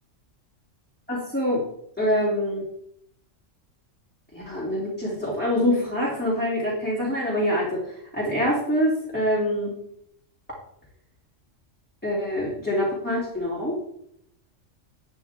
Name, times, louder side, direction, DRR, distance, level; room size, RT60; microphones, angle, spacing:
voice 1, 1.1-1.6 2.0-2.6 4.3-9.7 12.0-13.8, equal, 10° left, -7 dB, 3.0 m, -25 dB
12.0 x 9.2 x 3.6 m, 0.73 s
omnidirectional pair, 1.3 m